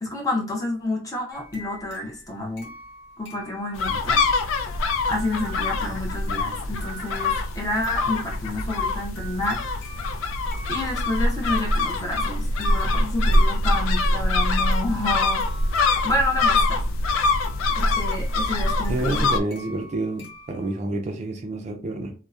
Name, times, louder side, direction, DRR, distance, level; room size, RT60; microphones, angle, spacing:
voice 1, 0.0-2.7 3.2-4.2 4.6-9.6 10.7-15.5 16.0-16.8 17.8-19.2, left 1 dB, 15° left, 0 dB, 0.5 m, -29 dB
sound 1, 1.3-20.8, right 1 dB, 55° left, 0.9 m, -45 dB
sound 2, 3.7-19.4, left 2 dB, 90° left, 0.3 m, -24 dB
voice 2, 18.9-22.1, right 2 dB, 35° right, 4 dB, 0.3 m, -28 dB
2.6 x 2.0 x 2.3 m, 0.36 s
head